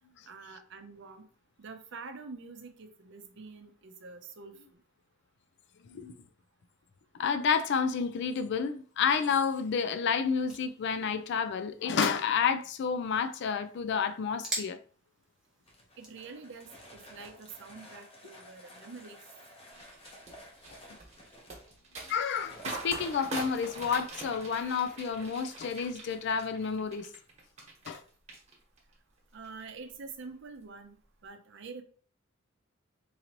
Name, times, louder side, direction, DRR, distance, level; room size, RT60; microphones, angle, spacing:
voice 1, 0.3-1.2 1.6-4.6 16.0-19.2 29.3-31.8, right 4 dB, 60° right, 0.6 m, -46 dB
voice 2, 7.1-14.8 22.1-27.1 27.9-28.0, left 6 dB, 60° left, 0.3 m, -30 dB
sound 1, 8.5-16.3, right 1 dB, ahead, 1.1 m, -46 dB
sound 2, 15.7-23.2, equal, 30° left, 0.9 m, -52 dB
sound 3, 19.7-28.0 28.3-28.9 29.3-29.6, right 3 dB, 35° right, 1.2 m, -43 dB
3.9 x 2.9 x 2.9 m
head